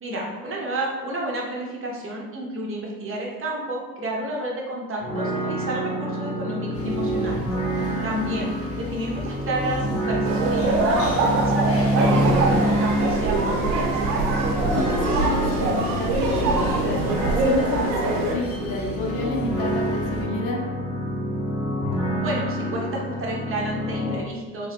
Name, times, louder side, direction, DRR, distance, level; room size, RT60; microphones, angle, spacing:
voice 1, 0.0-7.4 8.0-14.2 22.2-24.7, right 1 dB, 25° right, -2 dB, 0.7 m, -30 dB
sound 1, 5.0-24.2, right 1 dB, 15° left, 0.8 m, -27 dB
sound 2, 6.7-20.2, left 3 dB, 30° left, 0.6 m, -36 dB
sound 3, 10.2-18.3, right 3 dB, 75° right, 0.7 m, -23 dB
voice 2, 14.7-20.6, left 2 dB, 65° left, 0 dB, 0.8 m, -30 dB
2.7 x 2.2 x 3.5 m, 1.3 s
hypercardioid pair, 70°, 48 cm